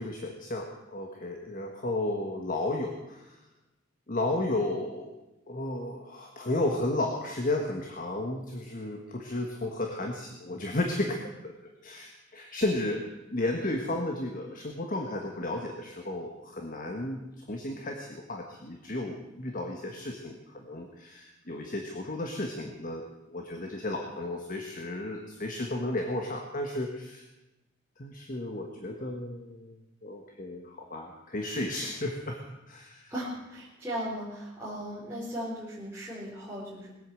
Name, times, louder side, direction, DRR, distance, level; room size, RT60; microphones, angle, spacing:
voice 1, 0.0-3.4 4.1-5.1 5.5-11.6 11.8-13.0 13.3-27.2 28.0-33.1, left 2 dB, 45° left, 3 dB, 1.5 m, -33 dB
voice 2, 33.1-37.0, equal, 10° right, -10 dB, 4.0 m, -37 dB
20.5 x 8.4 x 7.7 m, 1.0 s
head